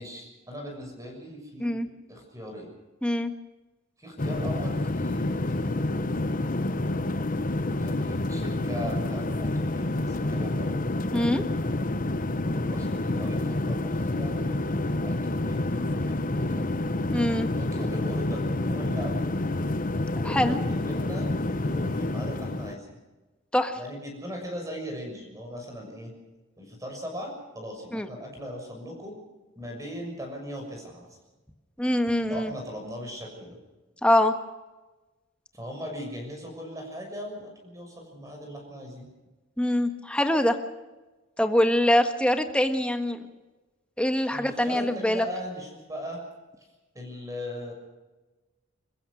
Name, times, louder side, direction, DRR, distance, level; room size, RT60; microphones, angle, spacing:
voice 1, 0.0-1.8 2.1-2.7 4.0-6.0 7.8-10.8 12.5-16.7 17.4-19.2 20.1-23.0 23.8-26.1 26.6-29.1 29.6-31.2 32.3-33.6 35.5-39.1 44.3-46.2 46.9-47.7, equal, 15° right, 2 dB, 6.5 m, -39 dB
voice 2, 3.0-3.3 11.1-11.4 17.1-17.5 20.2-20.6 23.5-23.8 27.9-28.1 31.8-32.5 34.0-34.3 39.6-40.6 41.4-43.2 44.0-45.2, left 1 dB, 5° left, 6 dB, 1.5 m, -24 dB
sound 1, 4.2-22.7, left 2 dB, 45° left, 0.9 m, -28 dB
27.5 x 15.0 x 6.3 m, 1.2 s
head